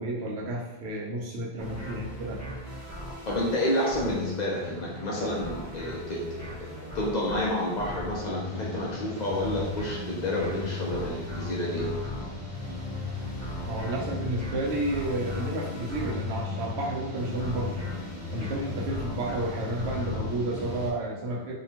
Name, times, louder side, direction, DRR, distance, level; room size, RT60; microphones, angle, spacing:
voice 1, 0.0-2.4 13.7-17.7 18.3-21.5, right 2 dB, 80° right, -2 dB, 0.9 m, -31 dB
sound 1, 1.6-20.9, left 3 dB, 20° right, 0.7 m, -36 dB
voice 2, 3.3-6.2 6.6-6.7 6.9-11.9, left 1 dB, 55° left, -4 dB, 0.5 m, -29 dB
2.8 x 2.2 x 2.8 m, 1.0 s
omnidirectional pair, 1.1 m